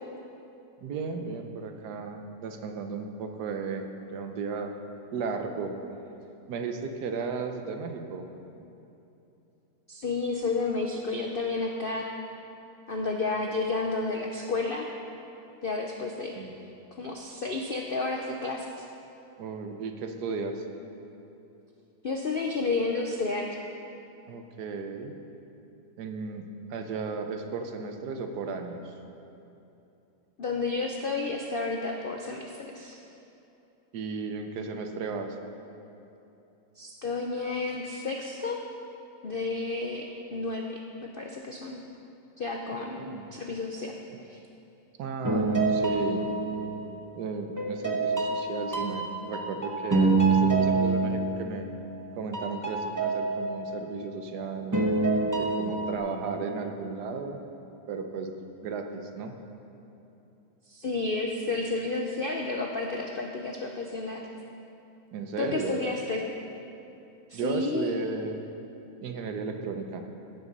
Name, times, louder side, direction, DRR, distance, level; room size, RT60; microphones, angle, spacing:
voice 1, 0.8-4.7 5.1-5.8 6.5-8.3 16.3-16.5 19.4-20.6 24.3-25.2 26.0-28.9 33.9-35.4 43.0-43.3 45.0-46.3 47.2-51.7 52.2-54.8 55.4-57.4 57.9-58.3 58.6-59.4 65.1-65.8 67.3-68.4 69.0-70.1, right 4 dB, 75° right, 5 dB, 1.4 m, -34 dB
voice 2, 9.9-12.1 12.9-14.9 15.6-16.4 16.9-18.8 22.0-23.6 30.4-33.0 36.8-38.6 39.2-41.8 42.4-44.0 44.3-44.4 60.7-64.3 65.4-66.2 67.3-67.9, left 3 dB, 65° left, 1 dB, 0.5 m, -31 dB
sound 1, 45.2-47.1 47.6-52.0 52.3-54.2 54.7-56.0, right 3 dB, 15° right, 0.7 m, -27 dB
16.5 x 6.1 x 5.4 m, 2.9 s
omnidirectional pair, 1.8 m